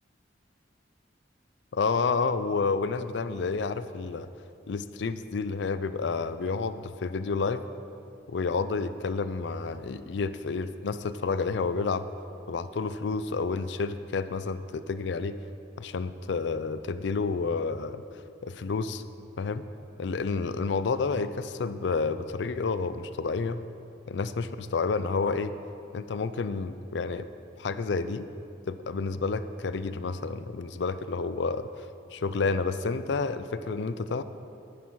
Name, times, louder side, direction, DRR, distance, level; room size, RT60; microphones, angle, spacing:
voice 1, 1.7-4.3 4.7-7.6 8.3-12.0 12.5-15.4 15.8-18.0 18.4-19.0 19.4-19.6 20.0-23.6 24.1-25.5 25.9-27.3 27.6-28.3 28.7-31.7 32.1-34.2, left 4 dB, 70° left, 12 dB, 0.4 m, -30 dB
10.0 x 9.4 x 4.7 m, 2.7 s
head